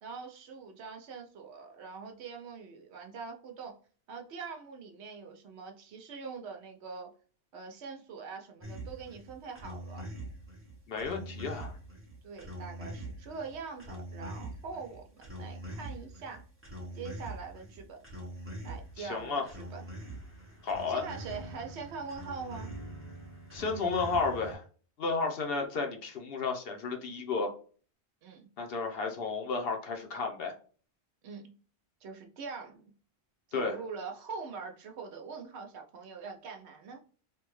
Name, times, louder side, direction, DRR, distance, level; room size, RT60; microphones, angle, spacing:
voice 1, 0.0-3.7 4.1-7.1 7.5-10.1 12.2-16.4 16.9-18.0 18.6-19.9 20.9-22.7 28.2-28.5 31.2-31.5 32.0-32.9 33.5-37.0, right 5 dB, 80° right, 3 dB, 1.0 m, -43 dB
sound 1, 8.6-24.5, right 1 dB, 15° right, 0.8 m, -44 dB
voice 2, 10.9-11.7 19.0-19.5 20.6-21.0 23.5-24.6 25.0-27.5 28.6-30.6 33.5-33.8, left 4 dB, 65° left, 4 dB, 0.9 m, -32 dB
3.3 x 2.2 x 3.1 m, 0.41 s
omnidirectional pair, 1.1 m